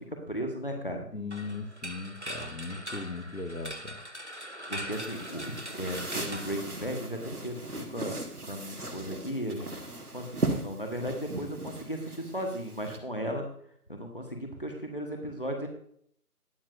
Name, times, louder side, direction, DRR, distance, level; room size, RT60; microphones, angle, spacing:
voice 1, 0.0-1.1 4.7-13.5 13.9-15.7, equal, 35° left, 3 dB, 1.2 m, -36 dB
voice 2, 1.1-4.0, left 3 dB, 90° left, 5 dB, 1.9 m, -38 dB
sound 1, 1.3-7.3, equal, 45° right, 0.6 m, -41 dB
sound 2, 4.9-13.0, right 2 dB, 65° right, 1.7 m, -38 dB
20.0 x 7.1 x 2.5 m, 0.65 s
figure-of-eight pair, 175°, 47 cm